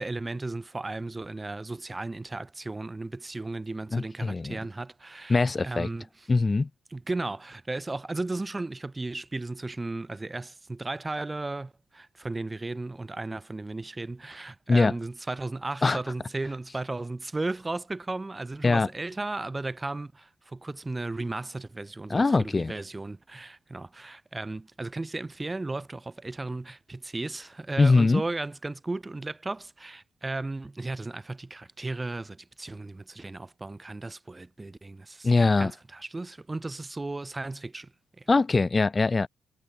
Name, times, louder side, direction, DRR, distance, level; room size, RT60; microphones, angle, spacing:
voice 1, 0.0-6.3 6.9-37.9 38.2-38.3, right 2 dB, 20° right, 7.8 m, -35 dB
voice 2, 3.9-4.6 5.3-5.9 6.3-6.7 14.7-14.9 15.8-16.0 18.6-18.9 22.1-22.7 27.8-28.2 35.2-35.7 38.3-39.3, left 3 dB, 25° left, 7.4 m, -22 dB
cardioid pair, 90°, 0 cm